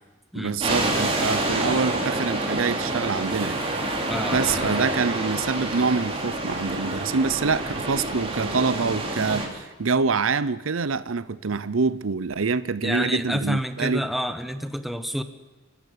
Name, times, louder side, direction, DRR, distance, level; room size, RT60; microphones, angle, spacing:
voice 1, 0.3-3.6 4.3-14.1, right 4 dB, 80° right, 0.7 m, -25 dB
sound 1, 0.6-9.5, right 2 dB, 30° right, 3.7 m, -27 dB
voice 2, 4.1-5.0 12.8-15.2, equal, ahead, 1.1 m, -29 dB
29.0 x 12.5 x 8.2 m
head